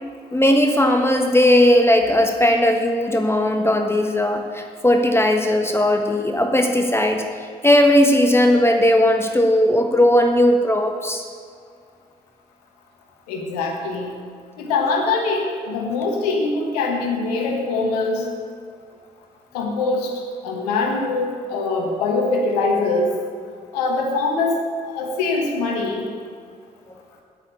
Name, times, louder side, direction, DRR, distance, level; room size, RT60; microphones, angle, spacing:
voice 1, 0.3-7.2 7.6-11.2, left 1 dB, 10° left, 4 dB, 1.4 m, -17 dB
voice 2, 13.3-14.2 14.6-18.3 19.5-20.1 20.4-23.1 23.7-26.1, left 3 dB, 85° left, 1 dB, 1.4 m, -23 dB
8.4 x 7.6 x 8.7 m, 2.2 s
hypercardioid pair, 45°, 20 cm